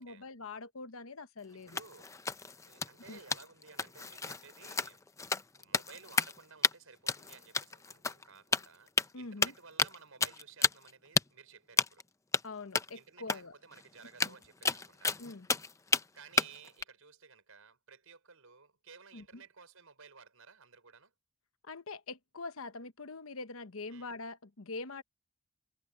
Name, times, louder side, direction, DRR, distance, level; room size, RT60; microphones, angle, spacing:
voice 1, 0.0-1.8 3.1-3.2 9.1-9.5 12.4-13.5 14.2-14.3 15.2-15.5 19.1-19.4 21.6-25.0, left 3 dB, 70° left, 1.0 m, -44 dB
sound 1, 1.7-6.4 6.6-6.7 7.1-8.2 8.5-9.1 9.4-10.0 10.2-10.9 11.2-11.3 11.8-12.0 12.3-12.4 12.7-12.9 13.3-13.4 13.7-13.8 14.1-16.0 16.4-16.8, left 4 dB, 15° left, 0.6 m, -31 dB
voice 2, 1.7-2.1 2.6-5.0 5.6-12.0 12.9-15.1 15.9-21.1 23.9-24.1, right 5 dB, 75° right, 5.1 m, -56 dB
head